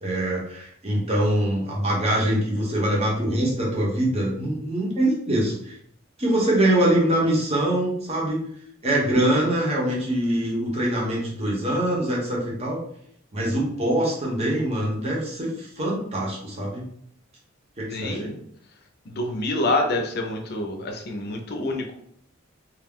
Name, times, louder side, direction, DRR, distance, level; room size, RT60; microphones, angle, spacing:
voice 1, 0.0-5.8 6.2-8.4 8.8-12.8 13.3-16.9 17.8-18.3, right 1 dB, 30° right, -3 dB, 0.8 m, -24 dB
voice 2, 17.9-18.3 19.1-21.9, left 2 dB, 50° left, 3 dB, 0.5 m, -27 dB
2.3 x 2.0 x 3.5 m, 0.68 s
head